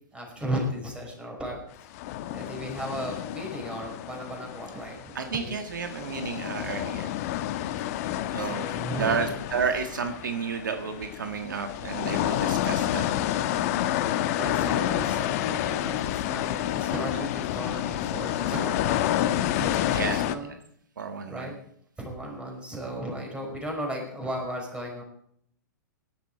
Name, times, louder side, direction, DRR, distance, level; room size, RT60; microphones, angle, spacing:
voice 1, 0.1-1.6 2.3-5.6 8.0-9.4 14.2-20.5 21.3-21.6 22.0-25.0, equal, 10° right, 0 dB, 5.7 m, -35 dB
sound 1, 1.9-5.4 5.7-20.3, left 12 dB, 50° left, 1.1 m, -29 dB
voice 2, 5.1-7.1 8.3-13.0 19.9-20.5 21.0-21.5, right 6 dB, 75° right, 7 dB, 1.5 m, -31 dB
18.0 x 11.0 x 4.9 m, 0.67 s
hypercardioid pair, 110°, 10 cm